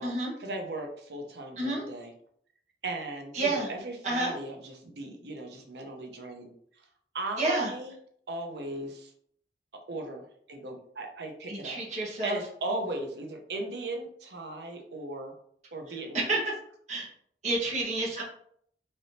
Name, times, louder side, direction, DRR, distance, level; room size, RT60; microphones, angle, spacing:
voice 1, 0.4-2.1 2.8-6.5 6.8-6.9 7.1-8.0 8.3-9.1 9.9-11.8 12.2-15.3 15.7-16.4, right 2 dB, 70° right, 3 dB, 0.7 m, -37 dB
voice 2, 1.6-1.9 3.3-3.7 4.0-4.4 7.4-7.7 11.5-12.4 15.9-16.4 16.9-17.1 17.4-18.2, right 2 dB, 40° right, -5 dB, 1.2 m, -29 dB
4.0 x 3.4 x 2.7 m, 0.65 s
head